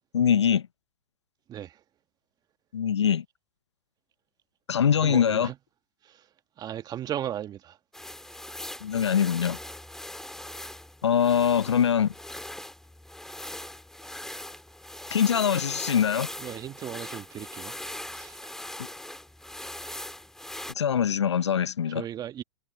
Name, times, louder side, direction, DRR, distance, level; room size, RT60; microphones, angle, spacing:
voice 1, 0.1-0.6 2.7-3.2 4.7-5.5 8.8-9.6 11.0-12.1 15.1-16.3 20.8-22.0, left 8 dB, 90° left, 0.6 m, -23 dB
voice 2, 1.5-1.8 5.0-5.6 6.0-6.2 6.6-7.8 16.4-17.7 18.1-18.4 21.9-22.4, right 11 dB, 30° right, 1.7 m, -36 dB
sound 1, 7.9-20.7, left 1 dB, 5° left, 2.8 m, -40 dB
hypercardioid pair, 105°, 14 cm